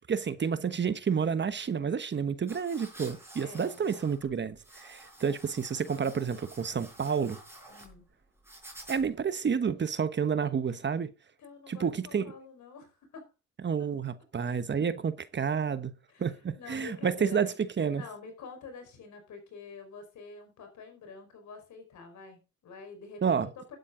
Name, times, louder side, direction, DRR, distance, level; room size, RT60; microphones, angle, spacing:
voice 1, 0.1-7.4 8.9-11.1 11.7-12.2 13.6-15.9 16.2-18.0 23.2-23.5, right 6 dB, 35° right, 1.1 m, -30 dB
sound 1, 2.5-9.3, right 1 dB, 10° right, 5.3 m, -51 dB
voice 2, 3.4-3.8 7.7-8.1 11.4-13.3 13.8-13.9 16.1-17.6 17.9-23.8, left 4 dB, 70° left, 4.8 m, -47 dB
12.0 x 9.2 x 3.8 m
cardioid pair, 90°, 30 cm